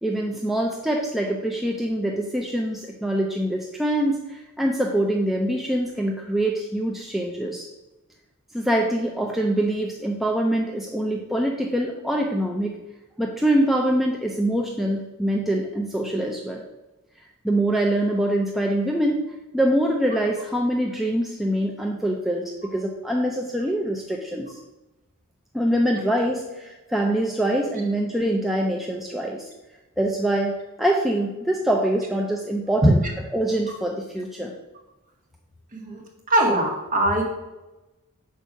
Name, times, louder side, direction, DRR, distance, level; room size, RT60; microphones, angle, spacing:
voice 1, 0.0-7.7 8.5-12.8 13.2-16.6 17.4-24.6 25.5-29.5 30.0-33.0 33.3-34.5, right 1 dB, ahead, 0 dB, 0.5 m, -24 dB
voice 2, 36.3-37.3, right 1 dB, 35° right, -1 dB, 1.7 m, -22 dB
5.5 x 4.6 x 6.2 m, 1.0 s
head